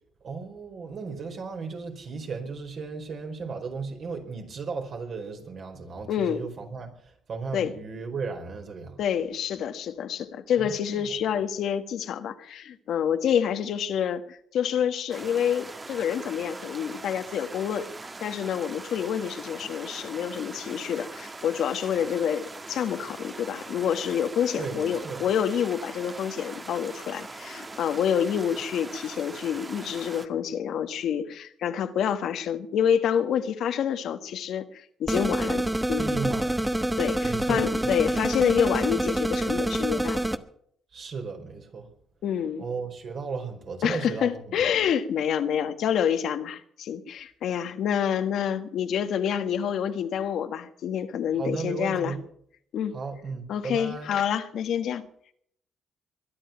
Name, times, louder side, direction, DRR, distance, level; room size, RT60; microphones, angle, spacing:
voice 1, 0.2-9.0 10.6-11.1 24.6-25.2 36.0-36.7 37.2-38.1 40.9-41.9 42.6-44.7 51.3-52.2 52.9-54.1, right 4 dB, 55° right, 4 dB, 4.8 m, -35 dB
voice 2, 6.1-6.4 7.5-7.7 9.0-17.9 18.2-36.1 37.0-40.3 42.2-42.6 43.8-52.1 52.7-53.0 53.5-55.1, left 8 dB, 75° left, 9 dB, 1.4 m, -27 dB
sound 1, 15.1-30.3, right 3 dB, 25° right, 1.4 m, -41 dB
sound 2, 35.1-40.4, right 1 dB, 10° right, 1.1 m, -27 dB
22.0 x 11.0 x 5.9 m, 0.66 s
cardioid pair, 90°, 0 cm